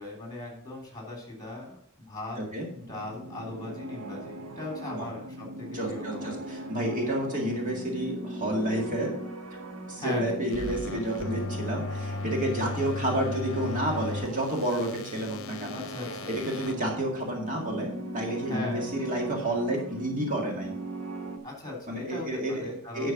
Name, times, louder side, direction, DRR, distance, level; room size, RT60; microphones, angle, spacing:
voice 1, 0.0-1.8 2.1-2.4 2.7-6.4 10.0-10.4 12.6-12.9 15.7-16.4 18.5-18.9 21.4-23.1, left 2 dB, 20° left, -1 dB, 3.1 m, -38 dB
voice 2, 2.4-2.7 4.9-5.1 5.7-9.1 9.9-15.8 16.3-20.7 21.9-23.1, right 1 dB, 40° right, 0 dB, 2.0 m, -30 dB
sound 1, 2.6-21.4, right 1 dB, 80° right, 1.2 m, -40 dB
sound 2, 10.5-16.7, left 3 dB, 65° left, 0.8 m, -36 dB
11.0 x 4.7 x 5.9 m, 0.63 s
head